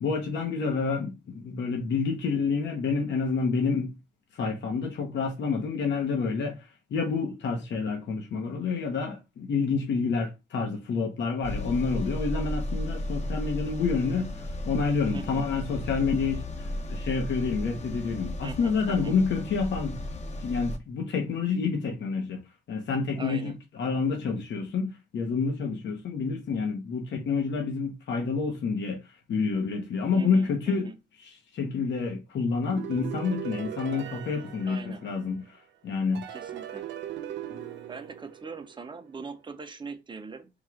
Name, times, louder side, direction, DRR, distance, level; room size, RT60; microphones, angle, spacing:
voice 1, 0.0-3.9 4.3-20.0 20.4-22.4 22.7-30.9 31.2-36.2, left 5 dB, 65° left, 1.0 m, -28 dB
sound 1, 11.4-20.8, left 1 dB, 35° left, 0.8 m, -34 dB
voice 2, 15.1-15.5 18.4-19.1 23.2-23.6 30.1-31.0 34.7-35.0 36.3-36.9 37.9-40.5, right 4 dB, 25° right, 0.7 m, -41 dB
sound 2, 32.6-35.5 36.1-39.0, right 11 dB, 65° right, 0.7 m, -39 dB
3.7 x 2.4 x 4.6 m
cardioid pair, 90°, 20 cm